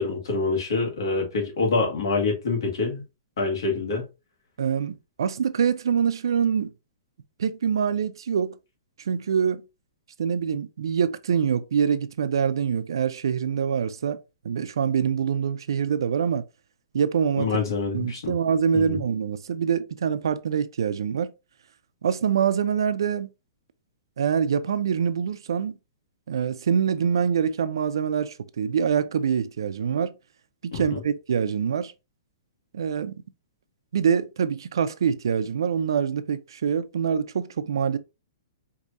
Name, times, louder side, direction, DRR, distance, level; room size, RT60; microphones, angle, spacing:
voice 1, 0.0-3.0 3.4-4.1 17.4-18.3 18.7-19.0 30.9-31.0, left 3 dB, 75° left, 1.8 m, -26 dB
voice 2, 4.6-6.7 7.4-8.5 9.1-9.6 10.2-14.2 14.4-16.4 16.9-17.5 17.9-21.3 22.0-23.3 24.2-25.7 26.3-30.1 30.6-31.9 32.7-33.2 33.9-38.0, right 7 dB, 80° right, 0.5 m, -25 dB
4.7 x 2.7 x 2.6 m
hypercardioid pair, 165°, 2 cm